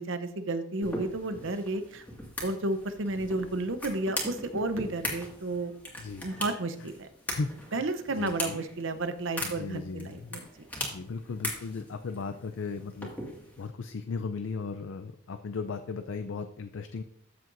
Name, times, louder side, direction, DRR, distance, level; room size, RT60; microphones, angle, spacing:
voice 1, 0.0-2.0 2.4-5.7 6.2-7.1 7.7-10.7, right 2 dB, 60° right, 10 dB, 0.8 m, -32 dB
sound 1, 0.8-13.7, left 1 dB, 10° left, 2.0 m, -40 dB
voice 2, 7.3-7.9 8.2-8.6 9.4-10.4 10.9-13.1 13.6-17.0, left 4 dB, 60° left, 8 dB, 0.5 m, -36 dB
13.5 x 7.6 x 2.6 m, 0.70 s
head